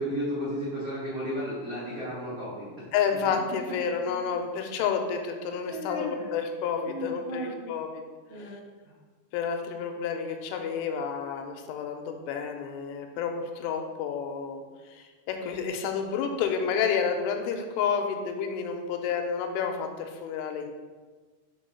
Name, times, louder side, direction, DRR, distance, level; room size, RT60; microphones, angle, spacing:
voice 1, 0.0-2.7 5.6-6.3 6.9-7.7 8.3-8.6 8.8-8.9, equal, 75° right, -10 dB, 1.2 m, -34 dB
voice 2, 2.9-8.0 8.4-8.6 9.3-14.6 14.9-20.7, left 6 dB, 85° left, 4 dB, 3.1 m, -30 dB
7.0 x 3.7 x 5.5 m, 1.4 s
omnidirectional pair, 5.5 m